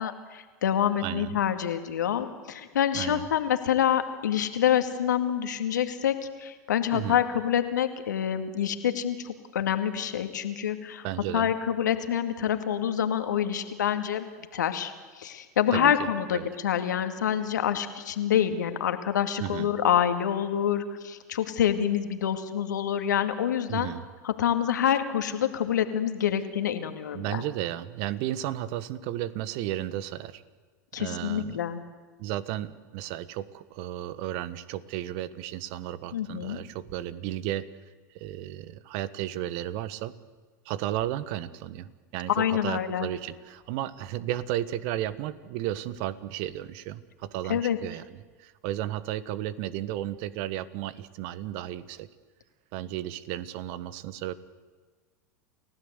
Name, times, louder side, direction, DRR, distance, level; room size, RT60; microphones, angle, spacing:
voice 1, 0.0-11.1 11.3-23.9 24.2-27.4 30.9-31.8 36.1-36.6 42.4-43.1 47.5-47.8, left 9 dB, 80° left, 8 dB, 2.2 m, -27 dB
voice 2, 1.0-1.3 2.9-3.2 6.9-7.2 11.0-11.5 15.7-15.9 16.3-16.5 19.4-19.7 23.7-24.0 27.1-30.4 31.0-31.6 32.2-37.6 38.1-40.1 40.6-52.1 52.7-54.3, right 13 dB, 55° right, 15 dB, 1.4 m, -33 dB
29.0 x 16.0 x 8.2 m, 1.4 s
hypercardioid pair, 90°, 10 cm